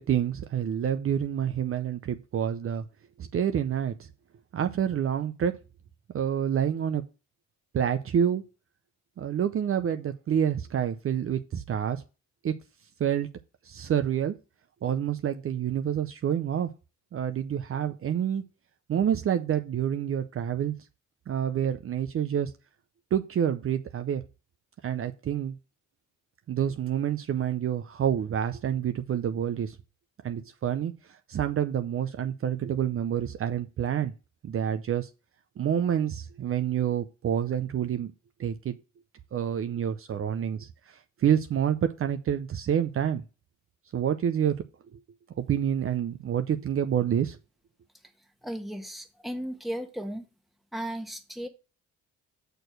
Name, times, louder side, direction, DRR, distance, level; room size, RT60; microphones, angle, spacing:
voice 1, 0.0-2.8 3.2-4.1 4.5-5.5 6.1-7.0 7.7-8.4 9.2-12.0 12.4-12.5 13.0-13.3 13.6-14.3 14.8-16.7 17.1-18.4 18.9-20.8 21.3-22.5 23.1-24.2 24.8-25.5 26.5-29.8 30.2-34.1 34.4-35.1 35.6-38.1 38.4-38.8 39.3-43.2 43.9-44.6 44.9-45.0 45.4-47.4, right 9 dB, 45° right, 0.6 m, -28 dB
voice 2, 48.4-50.2 50.7-51.5, equal, ahead, 1.3 m, -35 dB
6.4 x 4.5 x 6.4 m
cardioid pair, 90°, 30 cm